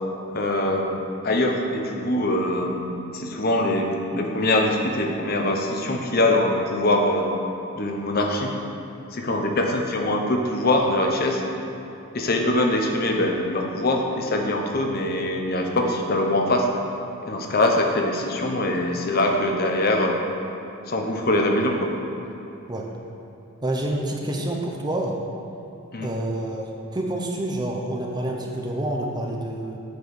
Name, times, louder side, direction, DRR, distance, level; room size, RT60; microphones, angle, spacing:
voice 1, 0.3-7.3 7.7-8.5 9.1-11.4 12.1-16.7 17.2-20.2 20.9-21.9 25.9-26.1, left 1 dB, 45° left, 2 dB, 0.7 m, -23 dB
voice 2, 23.6-25.2 26.0-29.8, right 1 dB, 20° right, 0 dB, 0.6 m, -28 dB
7.8 x 4.5 x 6.8 m, 2.9 s
head